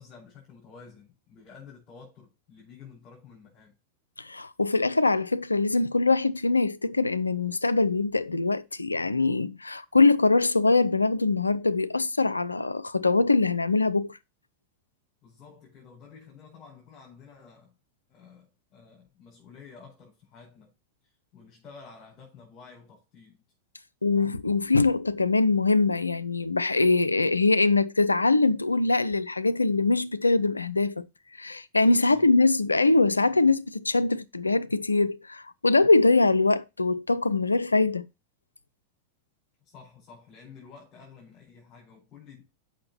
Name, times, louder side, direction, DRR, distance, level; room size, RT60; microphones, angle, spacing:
voice 1, 0.0-3.7 15.2-17.7 18.1-20.7 21.0-23.4 32.1-32.3 39.6-42.4, left 5 dB, 30° left, 5.0 m, -50 dB
voice 2, 4.2-14.2 24.0-31.0 31.4-38.1, left 3 dB, 80° left, 0.5 m, -23 dB
7.7 x 5.8 x 4.1 m
figure-of-eight pair, 90°, 0 cm